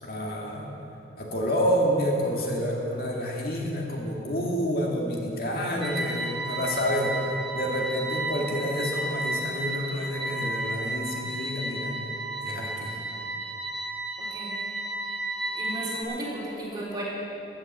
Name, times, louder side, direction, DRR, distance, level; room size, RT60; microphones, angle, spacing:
voice 1, 0.0-0.7 1.2-11.9 12.4-13.0, equal, 55° left, -2 dB, 2.1 m, -28 dB
sound 1, 5.8-16.0, right 2 dB, ahead, 2.1 m, -33 dB
voice 2, 14.2-14.6 15.5-17.0, right 1 dB, 25° right, -7 dB, 3.7 m, -34 dB
15.5 x 8.6 x 7.3 m, 2.9 s
head